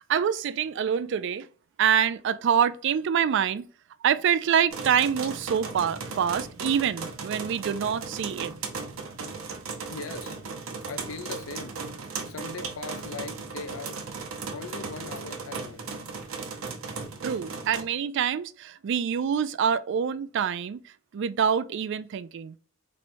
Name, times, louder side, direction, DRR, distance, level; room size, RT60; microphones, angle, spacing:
voice 1, 0.0-1.5 1.8-3.7 4.0-8.5 17.2-22.6, right 8 dB, 60° right, 0.3 m, -26 dB
sound 1, 4.7-17.8, right 4 dB, 80° right, 0.7 m, -37 dB
voice 2, 9.9-10.4 10.9-11.8 12.2-14.0 14.5-15.9, left 4 dB, 75° left, 0.5 m, -39 dB
4.3 x 3.1 x 2.6 m
head